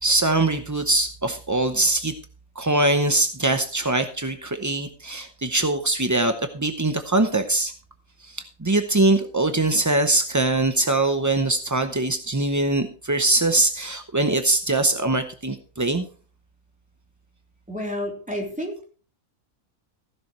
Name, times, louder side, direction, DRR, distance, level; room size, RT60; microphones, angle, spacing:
voice 1, 0.0-2.1 2.6-7.7 8.2-16.1, right 2 dB, 25° right, 7 dB, 0.4 m, -22 dB
voice 2, 17.7-18.8, equal, 5° right, 0 dB, 3.3 m, -30 dB
15.5 x 11.0 x 3.1 m, 0.39 s
omnidirectional pair, 1.5 m